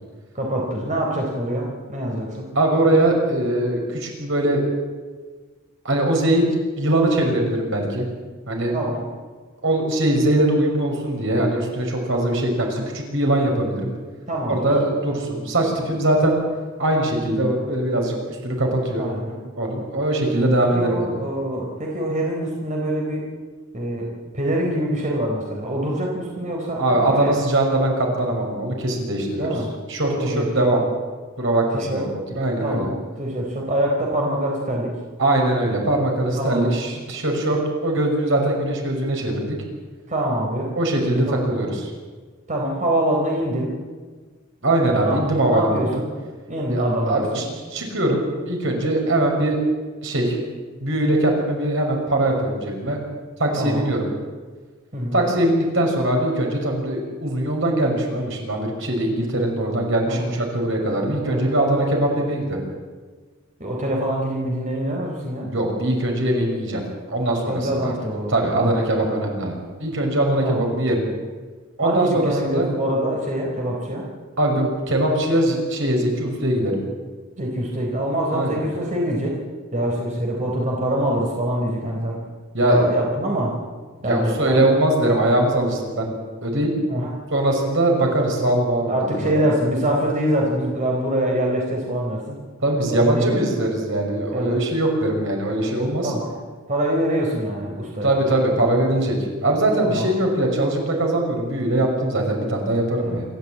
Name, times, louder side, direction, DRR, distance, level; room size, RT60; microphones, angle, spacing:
voice 1, 0.3-2.5 8.7-9.1 14.3-14.7 19.0-19.4 20.6-23.3 23.7-27.3 29.4-29.7 30.2-30.5 31.7-32.1 32.6-34.9 36.3-36.7 40.1-40.7 41.3-41.7 42.5-43.7 45.0-45.2 45.5-46.1 46.5-47.5 53.6-53.9 54.9-55.2 60.0-60.3 61.2-61.5 63.6-65.5 67.4-68.9 70.4-70.7 71.8-74.1 77.4-79.4 79.7-82.2 82.6-83.6 84.0-84.7 86.9-87.1 88.9-92.4 92.9-93.4 94.3-94.6 96.0-96.3 96.7-98.1 99.8-100.1 103.0-103.2, right 1 dB, 40° right, -1 dB, 4.1 m, -24 dB
voice 2, 2.5-4.6 5.8-6.4 6.8-8.0 8.5-8.7 9.6-13.9 14.5-16.4 16.8-18.1 18.4-19.1 19.6-21.1 26.8-29.5 29.9-30.8 31.4-32.1 32.3-32.9 35.2-39.6 40.7-41.9 44.6-46.0 46.7-47.4 47.7-49.6 50.0-50.4 50.8-53.0 53.4-54.1 55.1-62.6 65.4-66.8 67.1-67.9 68.3-71.0 71.8-72.7 74.4-76.8 78.3-78.7 82.5-82.8 84.0-86.1 86.4-86.7 87.3-89.5 92.6-96.1 98.0-99.2 99.4-103.2, right 1 dB, 65° right, 1 dB, 6.0 m, -21 dB
27.0 x 14.0 x 8.8 m, 1.4 s
head